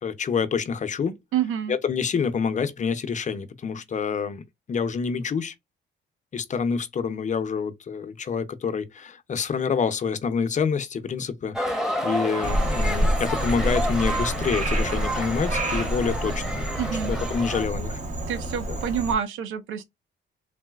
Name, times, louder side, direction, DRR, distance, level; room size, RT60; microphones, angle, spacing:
voice 1, 0.0-1.2 1.7-5.5 6.3-16.7 17.0-18.0 18.7-18.8, left 6 dB, 40° left, 0.6 m, -27 dB
voice 2, 1.3-1.8 16.8-17.1 18.3-19.8, right 8 dB, 85° right, 0.6 m, -27 dB
sound 1, 11.5-17.7, equal, ahead, 0.9 m, -30 dB
Frog, 12.4-19.1, right 1 dB, 35° right, 0.9 m, -27 dB
3.9 x 2.1 x 2.3 m
cardioid pair, 90°, 20 cm